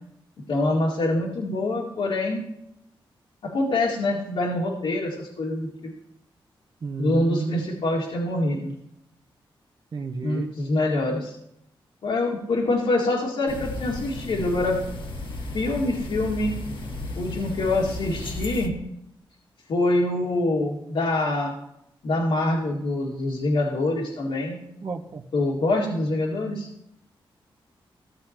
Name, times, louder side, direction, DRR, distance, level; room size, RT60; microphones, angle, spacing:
voice 1, 0.5-2.4 3.4-5.9 7.0-8.7 10.2-11.4 12.0-14.8 15.5-16.5 17.1-18.7 19.7-21.5 22.0-24.6 25.3-26.7, left 2 dB, 75° left, -3 dB, 2.0 m, -25 dB
voice 2, 6.8-7.6 9.9-10.5 24.8-25.2, right 4 dB, 50° right, 0 dB, 1.0 m, -31 dB
sound 1, 13.5-18.7, left 2 dB, 60° left, 1.6 m, -34 dB
15.0 x 7.9 x 2.9 m, 0.78 s
cardioid pair, 70°, 9 cm